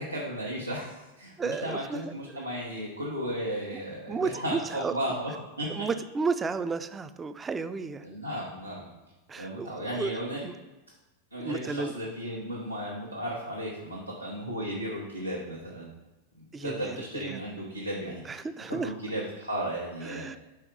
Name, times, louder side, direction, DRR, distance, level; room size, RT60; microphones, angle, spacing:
voice 1, 0.0-5.7 8.0-8.9 9.4-10.4 11.3-15.9 16.4-20.3, equal, 85° right, -5 dB, 1.0 m, -35 dB
voice 2, 1.4-2.4 3.7-3.8 4.1-5.2 5.7-8.1 9.3-10.5 11.4-11.9 16.5-17.4 18.2-18.9 20.0-20.4, right 4 dB, 15° right, 12 dB, 0.4 m, -33 dB
5.5 x 4.6 x 5.0 m, 1.1 s
figure-of-eight pair, 90°, 0 cm